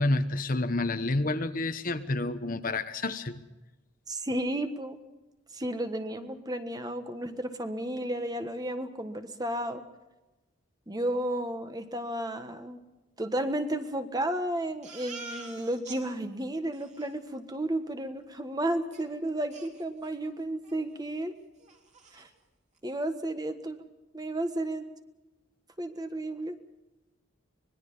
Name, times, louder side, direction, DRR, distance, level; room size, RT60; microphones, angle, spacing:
voice 1, 0.0-3.4, left 2 dB, 45° left, 9 dB, 1.1 m, -29 dB
voice 2, 4.1-5.0 5.5-9.8 10.9-12.8 13.2-21.4 22.1-22.3 22.8-23.9 24.1-24.9 25.8-26.6, right 1 dB, 20° right, 8 dB, 1.4 m, -33 dB
Crying sobbing, 14.8-16.0 16.4-16.5 16.7-17.1 18.9-19.0 19.5-20.3 20.6-20.8 21.2-21.3 21.6-22.3, right 3 dB, 35° right, 3.2 m, -46 dB
25.0 x 20.5 x 5.5 m, 1.1 s
head